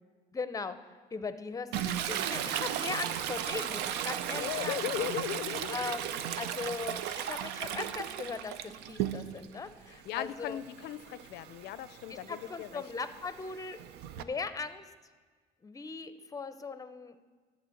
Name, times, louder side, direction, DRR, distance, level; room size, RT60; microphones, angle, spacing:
voice 1, 0.3-0.8 1.1-4.8 5.7-10.6 12.1-13.8 14.2-14.9 15.6-17.2, left 4 dB, 20° left, 11 dB, 0.6 m, -39 dB
Toilet flush, 1.7-9.5 9.9-14.2, right 10 dB, 90° right, 0.5 m, -36 dB
sound 1, 1.8-14.1, right 1 dB, 40° right, 1.2 m, -62 dB
voice 2, 4.3-5.9 7.1-7.2 10.1-12.8, left 13 dB, 80° left, 15 dB, 0.4 m, -37 dB
11.5 x 4.1 x 7.7 m, 1.5 s
cardioid pair, 110°, 17 cm